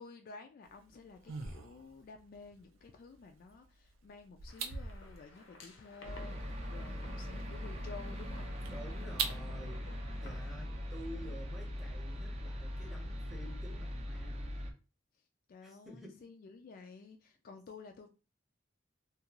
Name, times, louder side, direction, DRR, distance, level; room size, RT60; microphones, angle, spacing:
voice 1, 0.0-8.5 10.5-10.8 15.5-18.1, left 4 dB, 50° left, 0.3 m, -52 dB
sound 1, 0.6-9.5, right 6 dB, 85° right, 0.4 m, -45 dB
sound 2, 4.5-10.5, left 2 dB, 80° left, 0.6 m, -56 dB
sound 3, 6.0-14.7, equal, 35° right, 0.5 m, -41 dB
voice 2, 8.7-9.9 10.2-14.6 15.6-16.2, equal, ahead, 0.8 m, -50 dB
2.4 x 2.3 x 2.9 m
head